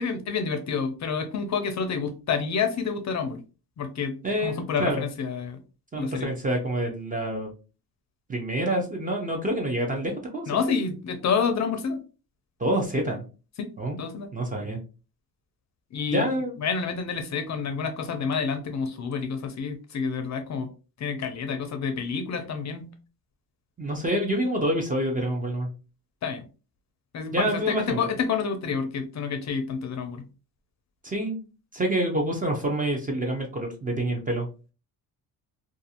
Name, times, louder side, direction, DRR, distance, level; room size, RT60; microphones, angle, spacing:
voice 1, 0.0-3.4 3.8-4.1 4.4-5.6 6.0-6.3 10.5-12.0 13.6-13.7 14.0-14.3 15.9-16.3 16.6-20.7 21.0-22.9 26.2-26.4 27.1-30.2, left 5 dB, 45° left, 7 dB, 0.5 m, -28 dB
voice 2, 4.2-5.1 5.9-7.5 8.3-10.6 12.6-13.2 13.8-14.0 14.3-14.8 16.1-16.6 23.8-25.7 27.3-28.1 31.0-31.4 31.7-34.5, right 1 dB, 20° right, 2 dB, 0.4 m, -27 dB
2.5 x 2.4 x 2.7 m, 0.33 s
cardioid pair, 150°, 40 cm